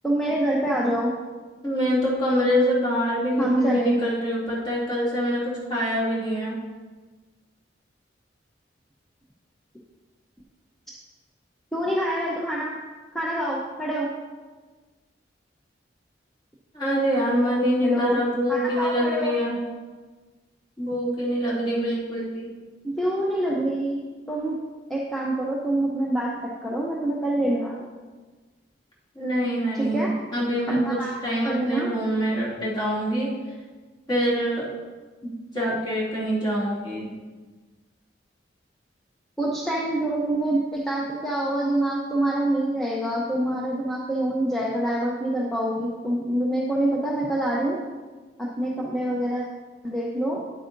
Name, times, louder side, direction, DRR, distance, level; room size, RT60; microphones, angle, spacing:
voice 1, 0.0-1.1 3.4-4.0 11.7-12.7 13.1-14.1 17.8-18.2 18.5-19.3 22.8-24.6 24.9-27.7 29.7-30.1 30.7-31.1 31.4-31.9 39.4-47.8 48.4-49.4 49.8-50.4, right 1 dB, ahead, -5 dB, 0.7 m, -26 dB
voice 2, 1.6-6.6 16.7-19.6 20.8-22.5 29.1-31.0 31.2-33.3 34.1-34.7 35.5-37.1, equal, 25° left, -7 dB, 2.6 m, -25 dB
9.9 x 8.2 x 2.6 m, 1.3 s
head